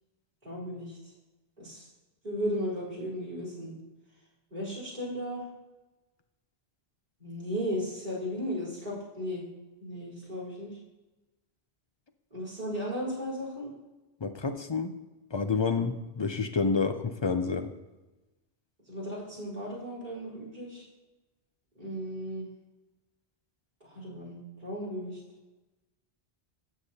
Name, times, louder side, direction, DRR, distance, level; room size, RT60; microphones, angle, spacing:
voice 1, 0.4-1.0 1.6-1.9 2.2-3.8 4.5-5.5 7.2-9.4 9.8-10.8 12.3-13.7 18.9-20.8 21.8-22.5 23.8-25.2, equal, 45° right, -6 dB, 4.1 m, -35 dB
voice 2, 14.2-14.9 15.3-17.7, left 4 dB, 35° left, 7 dB, 0.5 m, -29 dB
13.0 x 8.0 x 2.8 m, 1.1 s
omnidirectional pair, 1.1 m